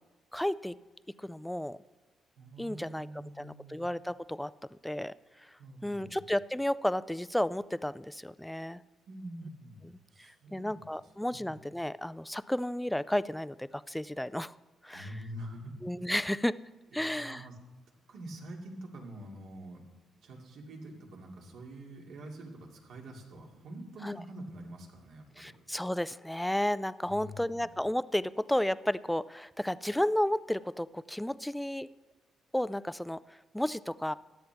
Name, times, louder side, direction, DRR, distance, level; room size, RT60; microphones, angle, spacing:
voice 1, 0.3-0.7 1.2-1.8 2.6-3.1 3.4-5.1 5.8-8.8 9.8-14.5 14.8-15.1 15.8-16.5 16.9-17.4 24.0-24.2 25.4-31.9 32.5-34.1, left 1 dB, 5° left, 17 dB, 0.3 m, -32 dB
voice 2, 2.4-3.8 5.6-6.2 9.1-10.8 11.3-11.6 14.9-15.7 16.9-17.6 18.1-19.8 20.2-25.5 27.0-27.7, right 1 dB, 75° right, 0 dB, 2.4 m, -46 dB
15.0 x 10.5 x 3.4 m, 1.3 s
cardioid pair, 90°, 0 cm